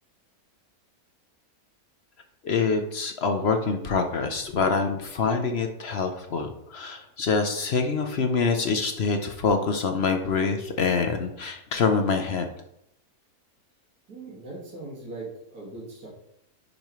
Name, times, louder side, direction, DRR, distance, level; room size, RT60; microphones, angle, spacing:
voice 1, 2.4-12.5, left 4 dB, 55° left, 6 dB, 0.8 m, -25 dB
voice 2, 14.1-16.1, right 2 dB, 75° right, -5 dB, 2.4 m, -40 dB
10.5 x 5.3 x 3.1 m, 0.78 s
omnidirectional pair, 1.6 m